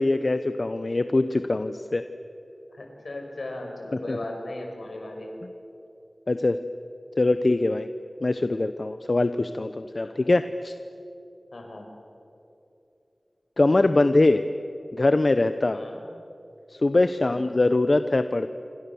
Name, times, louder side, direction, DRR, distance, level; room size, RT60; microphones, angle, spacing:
voice 1, 0.0-2.0 4.1-4.2 6.3-6.6 7.2-7.9 8.2-10.7 13.6-14.4 14.9-15.8 16.8-18.5, left 2 dB, 55° left, 10 dB, 0.8 m, -22 dB
voice 2, 2.7-5.3 10.0-10.1 11.5-11.8 15.7-16.0 17.2-17.5, left 2 dB, 80° left, 2 dB, 5.7 m, -37 dB
27.0 x 26.5 x 7.1 m, 2.8 s
wide cardioid pair, 50°, 0 cm